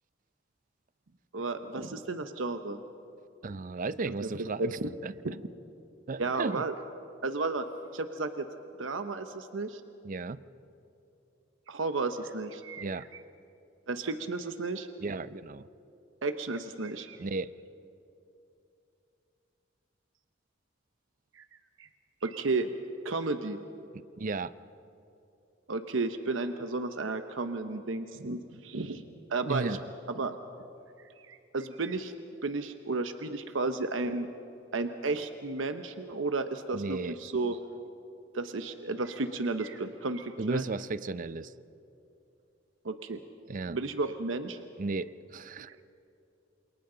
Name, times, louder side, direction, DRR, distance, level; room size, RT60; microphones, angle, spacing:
voice 1, 1.3-2.8 4.0-4.3 4.6-4.9 6.2-6.7 7.2-7.6 7.9-8.4 8.8-9.8 11.7-12.8 13.9-14.9 16.2-17.2 21.3-21.4 21.8-21.9 22.2-22.7 23.0-23.6 25.7-29.0 29.3-29.8 30.1-30.4 31.3-32.1 32.4-34.3 34.7-37.6 38.3-40.6 42.8-43.2 43.7-44.6, right 3 dB, 85° right, 8 dB, 0.9 m, -33 dB
voice 2, 3.4-5.1 6.1-6.6 10.0-10.4 12.8-13.0 15.0-15.7 17.2-17.5 23.9-24.5 29.5-29.8 36.7-37.2 40.4-41.5 43.5-43.8 44.8-45.7, right 3 dB, 45° right, 16 dB, 0.5 m, -34 dB
28.0 x 27.5 x 3.9 m, 2.8 s
head